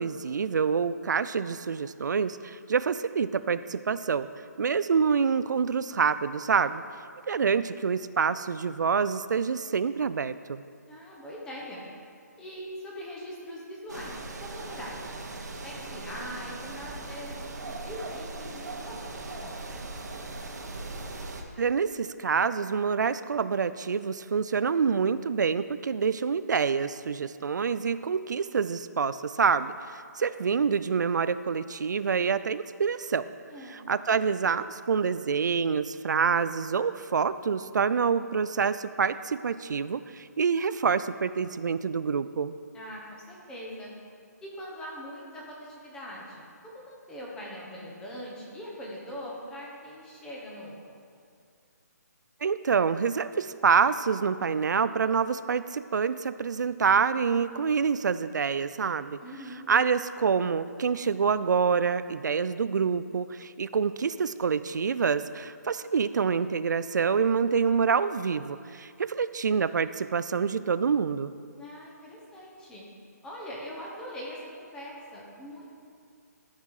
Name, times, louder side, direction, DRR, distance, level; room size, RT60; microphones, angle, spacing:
voice 1, 0.0-4.3 4.6-6.8 7.3-10.6 21.6-33.3 33.7-42.5 52.4-59.2 59.7-71.3, right 6 dB, 85° right, 14 dB, 0.4 m, -27 dB
voice 2, 10.9-11.8 12.4-15.0 15.6-19.6 33.5-33.8 42.7-43.9 44.4-51.0 59.2-59.6 71.6-72.8 73.2-75.7, equal, 5° left, -4 dB, 1.2 m, -42 dB
sound 1, 13.9-21.4, right 2 dB, 70° right, 1.2 m, -39 dB
13.0 x 5.6 x 4.8 m, 2.3 s
hypercardioid pair, 165°, 10 cm